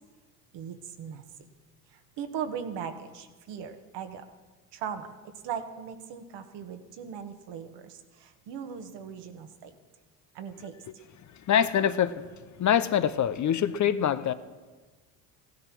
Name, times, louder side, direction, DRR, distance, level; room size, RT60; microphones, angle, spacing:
voice 1, 0.5-1.2 1.9-4.2 4.7-5.1 5.4-9.7 10.3-10.7, right 7 dB, 60° right, 1.7 m, -38 dB
voice 2, 11.5-12.2 12.6-14.3, left 9 dB, 40° left, 0.8 m, -24 dB
16.0 x 12.0 x 6.1 m
hypercardioid pair, 70°, 46 cm